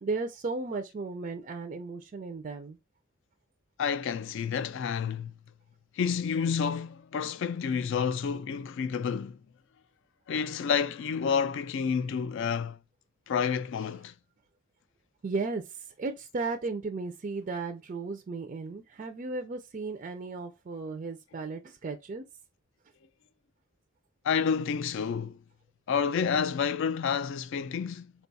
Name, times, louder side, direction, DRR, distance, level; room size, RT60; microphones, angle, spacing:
voice 1, 0.0-2.8 15.2-22.2, right 3 dB, 35° right, 0.4 m, -35 dB
voice 2, 3.8-5.4 6.0-9.4 10.3-12.8 13.3-14.1 24.2-25.4 25.9-28.1, left 6 dB, 60° left, 0.3 m, -29 dB
4.6 x 2.3 x 3.9 m
head